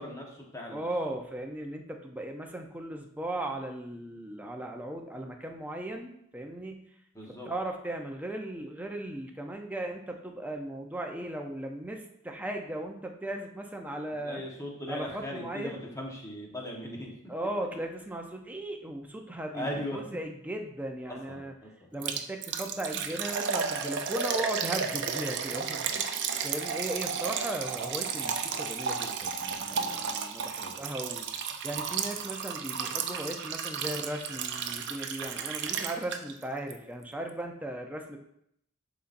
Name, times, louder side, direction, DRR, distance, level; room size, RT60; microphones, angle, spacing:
voice 1, 0.0-1.1 7.1-7.5 14.2-17.1 19.5-20.0 21.1-21.9 29.7-30.7, left 1 dB, 15° left, -1 dB, 1.2 m, -39 dB
voice 2, 0.7-6.9 7.3-14.4 14.9-15.8 17.3-19.7 19.9-21.5 21.9-31.3 31.6-38.2, right 1 dB, 5° right, 2 dB, 0.6 m, -37 dB
Liquid, 22.0-36.4 36.7-36.8 37.3-37.4, right 6 dB, 55° right, 0.5 m, -33 dB
11.0 x 4.1 x 2.6 m, 0.75 s
head